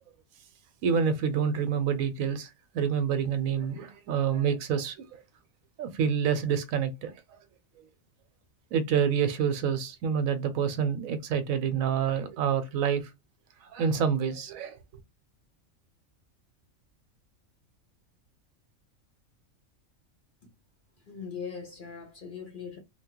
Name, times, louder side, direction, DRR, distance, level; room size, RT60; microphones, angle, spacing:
voice 1, 0.8-2.5 2.7-5.2 5.8-7.1 8.7-13.1 13.6-14.8, right 7 dB, 80° right, 1.0 m, -27 dB
voice 2, 21.1-22.8, left 6 dB, 50° left, 0.6 m, -40 dB
2.9 x 2.2 x 2.9 m
omnidirectional pair, 1.4 m